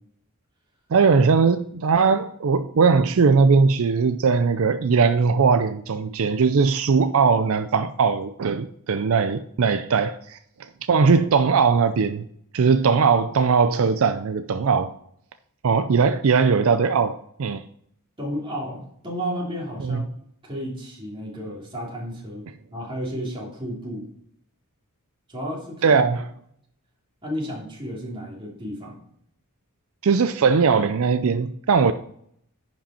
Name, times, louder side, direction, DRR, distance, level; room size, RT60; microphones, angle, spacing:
voice 1, 0.9-12.3 12.5-14.9 15.6-17.7 19.8-20.0 25.8-26.2 30.0-31.9, right 5 dB, 70° right, 0.4 m, -20 dB
voice 2, 18.2-20.0 20.4-22.4 22.7-24.1 25.3-26.1 27.2-29.0, equal, 25° right, 3.0 m, -32 dB
10.5 x 5.2 x 4.3 m
head